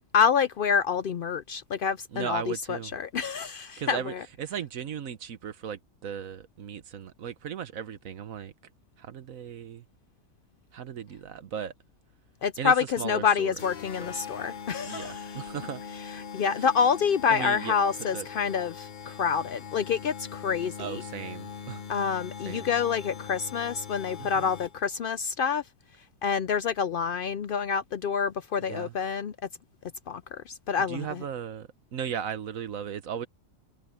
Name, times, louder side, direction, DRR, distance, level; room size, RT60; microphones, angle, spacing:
voice 1, 0.1-4.2 12.4-15.4 16.1-21.0 21.9-25.6 26.2-29.4 30.1-31.2, left 6 dB, 70° left, 0.5 m, -27 dB
voice 2, 2.1-2.9 3.8-8.5 9.0-9.8 10.7-11.7 12.6-13.5 14.0-14.1 14.8-15.8 17.3-17.7 18.1-18.3 20.8-21.8 22.4-22.7 24.2-24.5 28.7-28.9 30.9-33.3, right 8 dB, 75° right, 1.4 m, -36 dB
sound 1, 13.6-25.0, left 7 dB, 40° left, 0.9 m, -41 dB
omnidirectional pair, 1.4 m